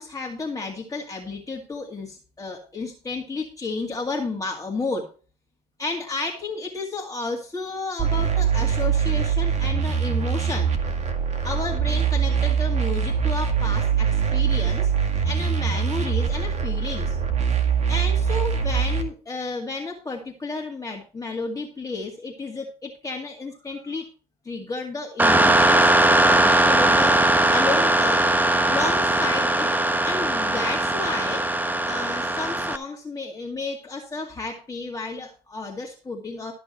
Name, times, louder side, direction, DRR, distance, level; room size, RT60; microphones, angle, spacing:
voice 1, 0.0-5.1 5.8-10.7 11.4-14.9 15.2-17.2 17.9-24.1 24.4-28.3 28.7-29.7 30.0-31.5 31.9-36.5, left 3 dB, 15° left, -1 dB, 2.2 m, -32 dB
sound 1, 8.0-19.0, right 7 dB, 35° right, 2.1 m, -23 dB
sound 2, 25.2-32.8, right 1 dB, 10° right, 0.9 m, -20 dB
13.0 x 6.2 x 4.4 m, 0.36 s
supercardioid pair, 90°, 20 cm